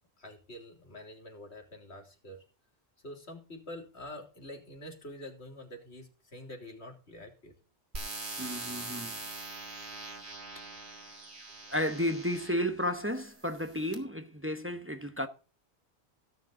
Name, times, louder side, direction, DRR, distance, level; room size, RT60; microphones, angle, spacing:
voice 1, 0.2-2.4 3.0-7.5, left 1 dB, 80° left, 3.5 m, -46 dB
sound 1, 7.9-12.7 13.4-13.9, right 3 dB, 80° right, 3.2 m, -42 dB
voice 2, 8.4-9.1 11.7-15.3, equal, 10° right, 1.1 m, -32 dB
16.0 x 7.5 x 3.9 m
omnidirectional pair, 1.1 m